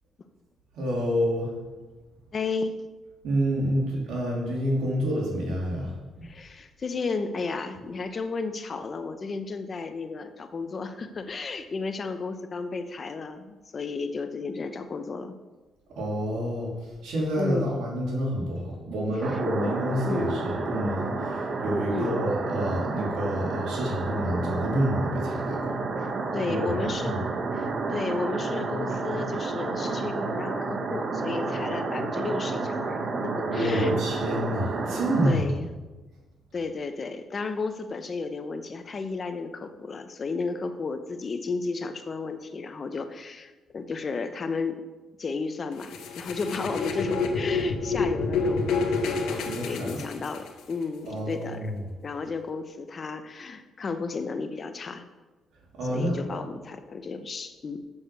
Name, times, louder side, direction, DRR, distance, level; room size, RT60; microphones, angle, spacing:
voice 1, 0.7-1.5 3.2-6.2 15.9-25.6 26.5-27.2 33.4-35.7 49.4-50.0 51.1-51.8 55.7-56.4, equal, 80° right, -3 dB, 3.1 m, -28 dB
voice 2, 2.3-2.7 6.2-15.3 17.4-17.7 20.0-20.5 21.8-22.2 26.3-27.2 27.5-33.9 34.9-35.7 36.5-44.8 45.2-51.7 52.0-55.0 55.9-57.8, left 4 dB, 40° left, 9 dB, 0.8 m, -33 dB
sound 1, 19.2-35.3, right 3 dB, 45° right, 1.1 m, -30 dB
sound 2, 45.8-50.7, left 4 dB, 85° left, 1.1 m, -28 dB
7.2 x 6.3 x 6.7 m, 1.2 s
cardioid pair, 90°, 0 cm